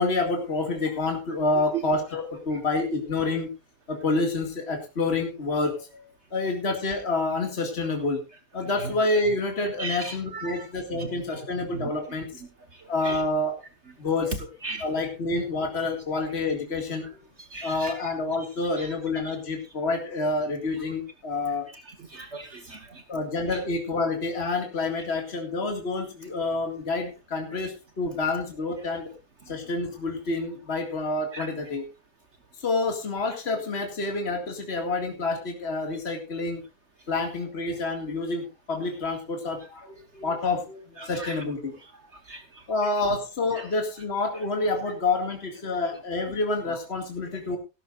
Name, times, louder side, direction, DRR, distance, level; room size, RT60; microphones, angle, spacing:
voice 1, 0.0-3.5 3.9-8.2 8.5-12.4 12.8-13.6 14.0-14.5 14.8-17.1 17.6-21.7 23.1-29.1 29.5-31.9 32.6-36.6 37.1-41.8 42.7-47.6, left 3 dB, 45° left, 3 dB, 2.4 m, -28 dB
voice 2, 9.8-10.7 10.9-11.1 11.7-11.8 13.0-13.2 14.6-14.8 17.5-18.1 18.8-18.9 19.2-19.4 21.9-23.0 23.5-23.6 31.3-31.5 41.0-41.4 42.3-42.4 45.7-45.8, right 4 dB, 50° right, 7 dB, 1.6 m, -37 dB
16.0 x 13.5 x 2.5 m, 0.29 s
omnidirectional pair, 1.5 m